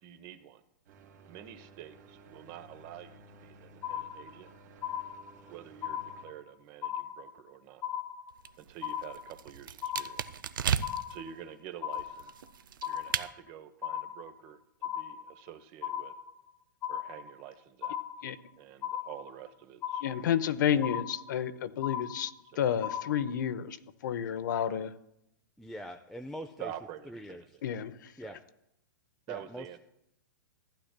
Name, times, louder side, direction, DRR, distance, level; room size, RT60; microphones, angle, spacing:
voice 1, 0.0-0.6 1.3-4.5 5.5-7.8 8.6-10.4 11.1-12.3 12.9-14.6 14.8-16.1 16.9-18.0 18.6-20.1 22.5-22.6 26.6-27.6 28.2-28.4 29.3-29.8, right 11 dB, 40° right, 11 dB, 0.8 m, -47 dB
sound 1, 0.9-6.3, right 2 dB, 65° right, 1.9 m, -55 dB
sound 2, 3.8-4.5 4.8-5.5 5.8-6.5 6.8-7.5 7.8-8.5 8.8-9.5 9.8-10.5 10.8-11.5 11.8-12.5 12.8-13.5 13.8-14.5 14.8-15.5 15.8-16.5 16.8-17.5 17.8-18.5 18.8-19.5 19.8-20.5 20.8-21.5 21.8-22.5 22.8-23.5, left 10 dB, 25° left, 0.9 m, -37 dB
sound 3, 8.3-11.2 11.9-13.3, right 8 dB, 80° right, 0.5 m, -35 dB
voice 2, 20.0-23.8 24.0-24.9 27.6-28.1, left 9 dB, 65° left, 12 dB, 0.7 m, -30 dB
voice 3, 25.6-26.7 27.1-27.6 28.2-28.4 29.3-29.8, equal, ahead, 3 dB, 0.4 m, -43 dB
15.0 x 9.8 x 2.2 m, 0.80 s
hypercardioid pair, 130°, 11 cm